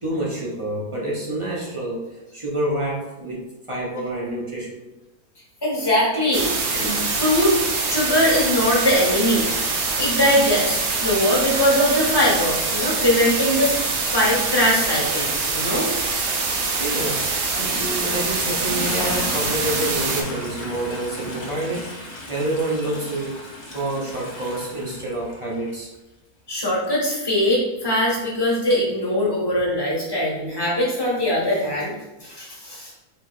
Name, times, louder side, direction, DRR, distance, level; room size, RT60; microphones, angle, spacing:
voice 1, 0.0-4.9 16.8-23.4 23.7-25.9, right 1 dB, 40° right, -5 dB, 0.4 m, -28 dB
voice 2, 5.6-6.5 6.7-7.5 7.9-13.7 14.1-15.9 26.5-31.9 32.2-32.9, left 1 dB, 15° left, -6 dB, 1.2 m, -21 dB
sound 1, 6.3-20.2, right 3 dB, 75° right, 1.2 m, -24 dB
Toilet flush, 17.5-25.8 26.8-26.9, left 1 dB, 40° left, 1.1 m, -35 dB
4.2 x 3.8 x 2.5 m, 1.0 s
omnidirectional pair, 1.6 m